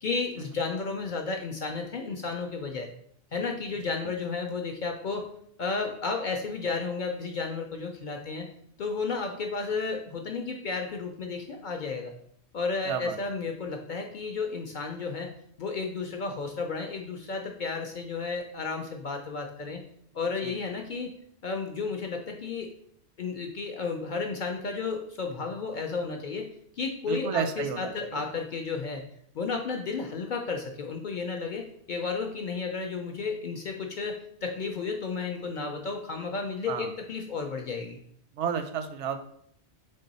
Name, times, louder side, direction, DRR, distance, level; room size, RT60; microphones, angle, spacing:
voice 1, 0.0-2.9 3.3-5.3 5.6-8.5 8.8-12.1 12.5-15.3 15.6-19.8 20.1-21.1 21.4-22.7 23.2-26.5 26.8-29.0 29.3-38.0, left 4 dB, 60° left, 3 dB, 0.5 m, -32 dB
voice 2, 12.8-13.5 20.4-20.6 27.1-28.2 36.7-36.9 38.3-39.2, right 7 dB, 85° right, 8 dB, 0.9 m, -32 dB
3.7 x 3.6 x 4.0 m, 0.67 s
omnidirectional pair, 1.2 m